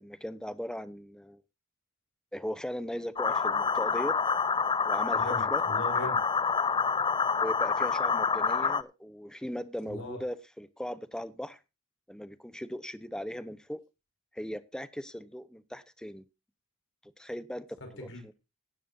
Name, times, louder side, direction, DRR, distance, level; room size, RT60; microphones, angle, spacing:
voice 1, 0.0-1.4 2.3-4.2 4.8-5.6 7.4-11.6 12.1-13.8 14.3-16.2 17.0-18.3, equal, 5° left, 0.8 m, -38 dB
sound 1, 3.2-8.8, left 5 dB, 25° left, 0.5 m, -27 dB
voice 2, 5.1-6.2 9.8-10.2 18.0-18.3, equal, 65° left, 5.4 m, -39 dB
17.0 x 11.0 x 2.7 m
head